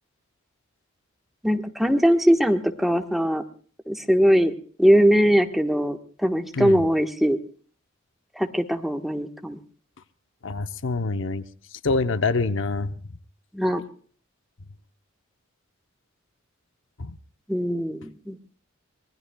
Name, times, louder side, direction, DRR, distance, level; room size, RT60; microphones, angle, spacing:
voice 1, 1.4-3.4 3.9-4.5 4.8-7.4 8.3-9.6 13.5-13.8 17.5-18.4, equal, ahead, 4 dB, 1.2 m, -21 dB
voice 2, 10.4-11.4 11.8-12.9 17.0-17.1, left 3 dB, 65° left, 10 dB, 0.8 m, -25 dB
25.0 x 20.0 x 2.3 m, 0.43 s
head